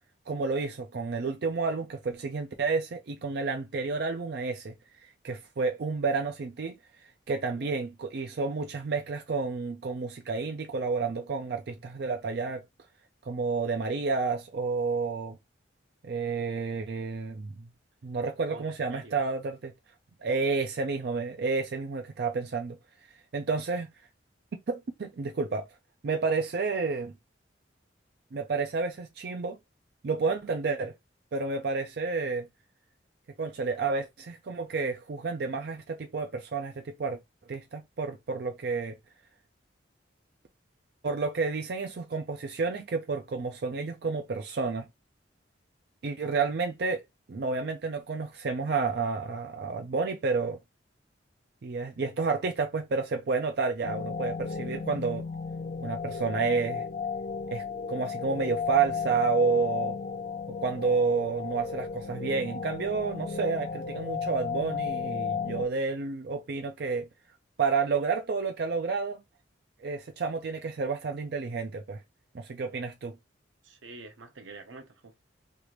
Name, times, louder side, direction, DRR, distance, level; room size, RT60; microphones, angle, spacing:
voice 1, 0.3-4.7 5.0-6.8 7.3-12.6 13.3-15.4 16.0-17.7 18.0-19.7 20.2-22.8 23.3-23.9 24.5-25.7 26.0-27.1 28.3-29.6 30.0-30.9 31.3-32.5 33.4-37.2 37.5-39.0 41.0-44.9 46.0-47.0 47.3-50.6 51.6-55.3 55.8-56.9 57.5-60.0 60.6-67.1 67.6-69.2 69.8-72.0 72.3-73.2, right 4 dB, 55° right, 0.4 m, -30 dB
voice 2, 18.5-19.2 73.6-75.2, right 3 dB, 85° right, 0.8 m, -47 dB
sound 1, 53.8-65.7, left 5 dB, 45° left, 0.3 m, -34 dB
3.3 x 2.5 x 3.0 m
head